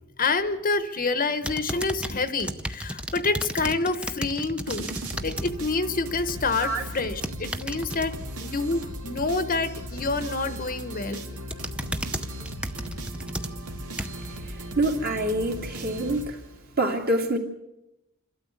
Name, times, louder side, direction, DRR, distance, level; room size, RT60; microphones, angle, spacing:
voice 1, 0.2-4.9 5.2-8.1 8.4-11.4, left 3 dB, 40° left, 11 dB, 1.0 m, -27 dB
sound 1, 1.4-5.5 5.9-6.2 7.0-8.1 10.4-10.8 11.2-14.3 14.9-15.0, right 1 dB, 5° right, 0.7 m, -34 dB
sound 2, 4.7-16.8, equal, 85° right, 2.4 m, -37 dB
voice 2, 14.7-16.4 16.8-17.4, right 1 dB, 45° right, 2 dB, 2.7 m, -25 dB
27.5 x 13.0 x 8.4 m, 0.90 s
head